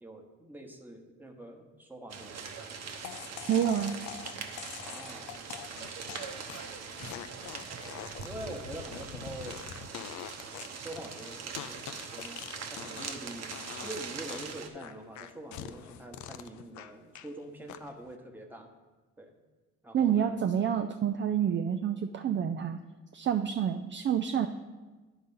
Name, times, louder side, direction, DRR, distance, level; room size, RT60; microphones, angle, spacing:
voice 1, 0.0-2.7 4.5-5.4 5.7-5.8 8.2-9.6 10.8-13.6 13.8-18.7 19.2-19.3 19.8-20.4, right 1 dB, 5° right, 1 dB, 1.1 m, -45 dB
sound 1, 2.1-14.7, right 5 dB, 60° right, 0.9 m, -42 dB
sound 2, 3.0-13.3 13.5-14.0 14.3-17.3 17.7-18.1, left 10 dB, 75° left, 0.5 m, -44 dB
voice 2, 3.5-4.0 19.9-22.8 23.1-24.5, right 9 dB, 40° right, 7 dB, 0.4 m, -28 dB
10.0 x 4.0 x 5.5 m, 1.3 s
cardioid pair, 90°, 30 cm